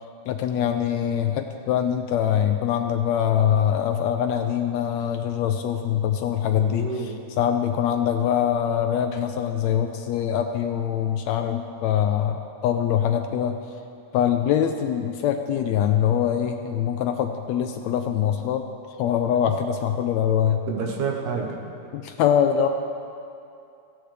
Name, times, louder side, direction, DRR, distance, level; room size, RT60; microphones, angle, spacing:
voice 1, 0.3-13.6 14.1-18.6 19.0-20.6 21.9-22.7, left 9 dB, 80° left, 6 dB, 1.7 m, -23 dB
voice 2, 6.5-7.2 20.7-21.7, right 5 dB, 75° right, 0 dB, 2.6 m, -29 dB
16.5 x 15.0 x 3.3 m, 2.6 s
omnidirectional pair, 3.5 m